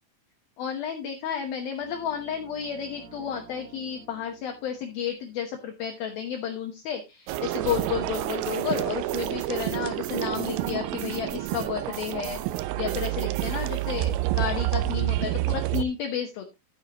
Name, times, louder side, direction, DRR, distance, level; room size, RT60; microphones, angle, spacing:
voice 1, 0.6-16.5, left 8 dB, 70° left, 3 dB, 2.5 m, -32 dB
sound 1, 1.8-5.8, right 5 dB, 70° right, 3.2 m, -51 dB
sound 2, 7.3-15.8, right 16 dB, 85° right, 3.1 m, -28 dB
12.0 x 8.8 x 3.0 m, 0.24 s
omnidirectional pair, 5.3 m